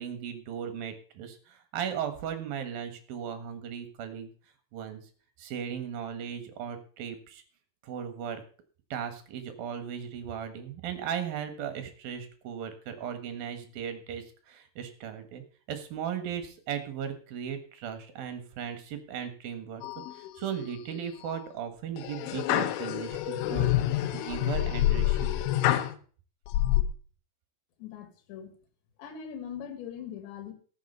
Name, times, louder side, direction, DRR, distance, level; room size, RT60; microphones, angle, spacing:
voice 1, 0.0-4.3 4.7-5.0 5.4-7.4 7.8-8.4 8.9-19.8 20.1-25.4, right 8 dB, 60° right, 8 dB, 2.8 m, -37 dB
sound 1, 19.8-20.5 21.0-21.4 22.0-25.9 26.5-26.8, left 14 dB, 90° left, 3.4 m, -27 dB
voice 2, 27.8-28.5 29.0-30.5, left 8 dB, 70° left, 8 dB, 4.2 m, -41 dB
14.0 x 7.4 x 6.7 m, 0.42 s
omnidirectional pair, 5.6 m